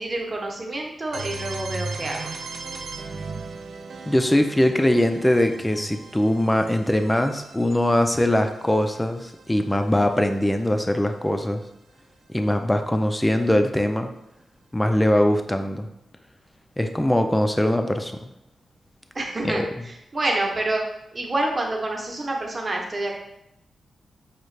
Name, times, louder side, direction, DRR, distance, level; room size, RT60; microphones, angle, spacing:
voice 1, 0.0-2.3 19.1-20.8 21.1-23.1, right 2 dB, 35° right, 0 dB, 0.9 m, -27 dB
sound 1, 1.1-10.9, right 3 dB, 70° right, 0.4 m, -38 dB
voice 2, 4.1-11.6 12.3-14.1 14.7-15.9 16.8-18.3 19.4-19.7, left 1 dB, 10° left, 6 dB, 0.4 m, -21 dB
5.3 x 2.4 x 3.2 m, 0.83 s
cardioid pair, 80°, 0 cm